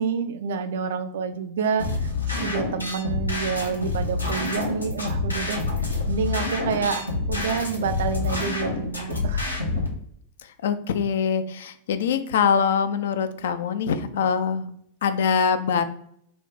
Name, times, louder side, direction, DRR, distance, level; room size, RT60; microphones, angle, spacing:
voice 1, 0.0-9.5, right 6 dB, 60° right, 9 dB, 0.4 m, -28 dB
sound 1, 1.8-9.9, left 3 dB, 80° left, 0.8 m, -27 dB
voice 2, 10.4-14.7 15.0-15.8, left 6 dB, 60° left, 11 dB, 0.4 m, -23 dB
4.0 x 2.3 x 3.2 m, 0.68 s
figure-of-eight pair, 90°, 0 cm